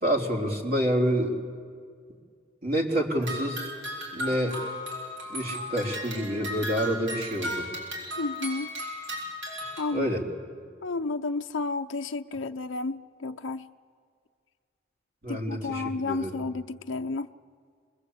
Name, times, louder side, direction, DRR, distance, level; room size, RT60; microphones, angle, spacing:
voice 1, 0.0-1.4 2.6-3.7 4.1-4.6 5.3-7.7 9.9-10.2 15.2-16.3, equal, 50° right, 0 dB, 3.7 m, -28 dB
sound 1, 3.2-9.9, equal, 80° right, 6.5 m, -35 dB
voice 2, 8.2-8.7 9.8-10.1 10.8-13.7 15.3-17.3, left 3 dB, 85° left, 6 dB, 0.6 m, -31 dB
27.5 x 22.0 x 8.3 m, 2.1 s
head